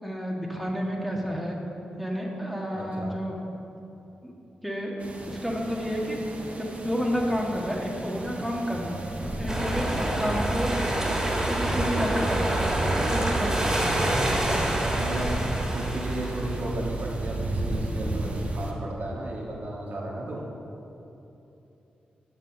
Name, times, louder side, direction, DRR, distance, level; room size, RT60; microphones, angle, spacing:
voice 1, 0.0-1.6 2.0-3.3 4.2-4.3 4.6-6.2 6.6-10.8 11.5-12.6 13.0-13.9, equal, ahead, -2 dB, 1.7 m, -30 dB
voice 2, 2.7-3.1 10.0-10.2 14.8-15.4 15.7-20.4, right 1 dB, 60° right, -3 dB, 1.6 m, -34 dB
sound 1, 5.0-18.7, right 1 dB, 45° right, 1.2 m, -34 dB
sound 2, 9.5-17.6, right 1 dB, 15° right, 2.1 m, -27 dB
7.8 x 5.6 x 6.6 m, 2.9 s
supercardioid pair, 45°, 3 cm